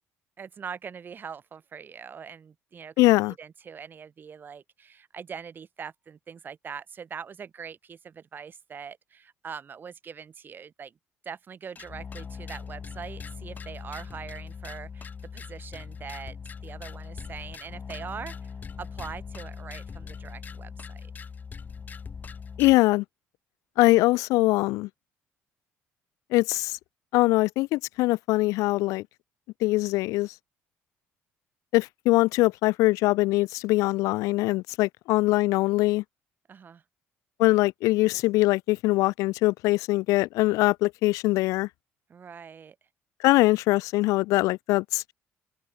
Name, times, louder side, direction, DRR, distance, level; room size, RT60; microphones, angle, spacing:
voice 1, 0.4-10.9 11.2-16.4 16.6-18.5 18.8-21.1 36.5-36.8 42.1-42.8, right 6 dB, 35° right, 2.9 m, -42 dB
voice 2, 3.0-3.3 22.6-23.0 23.8-24.9 26.3-26.8 27.1-29.0 29.6-30.3 31.7-36.0 37.4-41.7 43.2-45.1, left 20 dB, 85° left, 0.5 m, -22 dB
sound 1, 11.8-22.8, left 5 dB, 30° left, 4.5 m, -40 dB
open air
cardioid pair, 110°, 6 cm